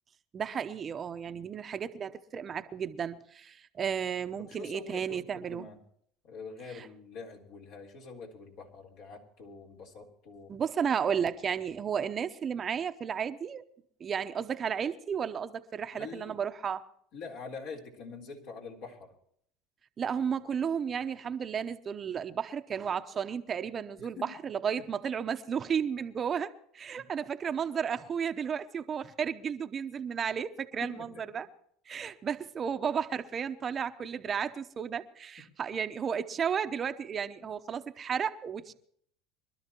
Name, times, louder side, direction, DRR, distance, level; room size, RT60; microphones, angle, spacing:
voice 1, 0.3-5.7 6.7-6.9 10.5-13.6 14.0-16.8 20.0-31.5 31.9-38.7, right 7 dB, 35° right, 0.8 m, -33 dB
voice 2, 4.4-5.8 6.2-10.5 15.9-16.4 17.1-19.1 24.0-24.1 27.0-27.1 30.8-31.1 31.3-31.4 37.4-37.5, left 4 dB, 65° left, 3.8 m, -45 dB
25.0 x 12.5 x 3.0 m
supercardioid pair, 100°, 0 cm